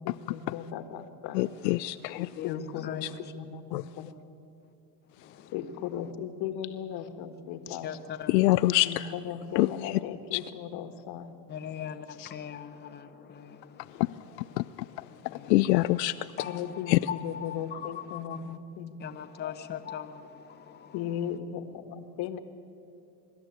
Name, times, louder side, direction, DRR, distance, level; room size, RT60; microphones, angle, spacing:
voice 1, 0.0-1.4 2.4-4.1 5.5-8.0 8.8-11.3 12.2-12.3 16.2-19.0 20.9-22.4, left 9 dB, 50° left, 8 dB, 1.7 m, -37 dB
voice 2, 1.4-2.3 3.0-3.1 3.7-3.8 8.3-8.9 9.6-9.7 10.3-10.4 14.0-14.1 14.6-14.7 15.5-16.1 16.9-17.0, left 19 dB, 80° left, 12 dB, 0.6 m, -24 dB
voice 3, 2.2-3.2 7.8-8.4 11.5-12.1 12.3-13.1 13.3-13.6 15.3-15.6 15.8-16.0 16.4-18.4 19.0-20.2 20.7-21.0, left 9 dB, 20° left, 6 dB, 1.0 m, -39 dB
24.5 x 12.0 x 9.4 m, 2.6 s
supercardioid pair, 120°, 49 cm